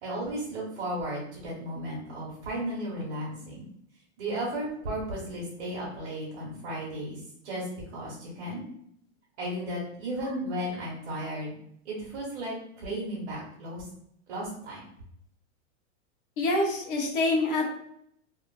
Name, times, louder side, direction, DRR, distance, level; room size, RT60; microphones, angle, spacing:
voice 1, 0.0-3.7 4.2-7.2 7.4-7.7 7.9-8.6 9.4-11.6 11.8-13.8 14.3-14.8, right 1 dB, 75° right, -5 dB, 1.2 m, -34 dB
voice 2, 16.4-17.7, left 2 dB, 50° left, 0 dB, 0.7 m, -26 dB
3.0 x 2.4 x 2.3 m, 0.71 s
supercardioid pair, 175°, 36 cm